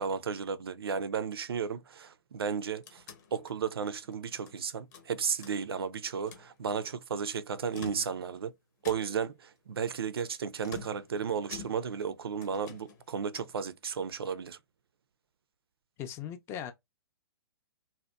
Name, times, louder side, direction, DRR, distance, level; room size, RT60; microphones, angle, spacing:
voice 1, 0.0-3.0 3.3-8.5 8.8-14.6, right 6 dB, 70° right, 0.4 m, -34 dB
sound 1, 2.4-4.6 4.9-5.9 6.2-6.5 7.6-8.4 8.8-9.4 10.6-12.1 12.4-13.6, left 6 dB, 45° left, 0.8 m, -48 dB
voice 2, 16.0-16.7, left 9 dB, 20° left, 0.4 m, -38 dB
2.7 x 2.0 x 2.2 m
figure-of-eight pair, 115°, 13 cm